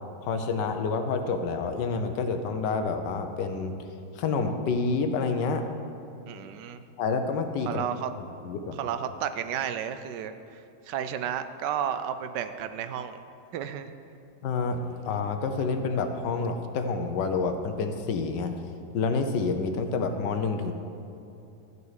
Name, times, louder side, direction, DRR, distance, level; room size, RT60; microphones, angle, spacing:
voice 1, 0.2-3.7 4.1-5.6 7.0-7.8 8.4-8.8 14.4-18.5 18.9-20.7, left 4 dB, 80° left, 7 dB, 1.5 m, -28 dB
voice 2, 6.3-6.8 7.7-8.1 8.8-10.6 10.9-13.2 13.5-13.9, right 9 dB, 80° right, 10 dB, 1.2 m, -32 dB
13.5 x 5.6 x 8.1 m, 2.7 s
omnidirectional pair, 1.9 m